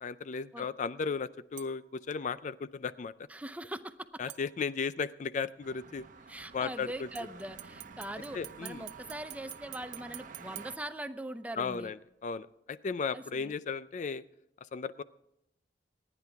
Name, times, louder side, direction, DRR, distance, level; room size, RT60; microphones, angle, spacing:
voice 1, 0.0-3.1 4.2-6.0 6.5-6.9 8.3-8.8 11.6-11.9 12.2-14.2 14.7-15.0, left 5 dB, 45° left, 15 dB, 0.4 m, -35 dB
sound 1, 1.6-2.0 4.3-5.0 7.1-11.5 12.0-12.1, right 14 dB, 75° right, 0.7 m, -49 dB
voice 2, 3.3-3.9 6.3-11.9 13.1-13.5, right 1 dB, 10° right, 10 dB, 0.6 m, -41 dB
sound 2, 5.6-10.8, right 4 dB, 50° right, 0.9 m, -51 dB
27.0 x 10.0 x 3.5 m, 0.81 s
head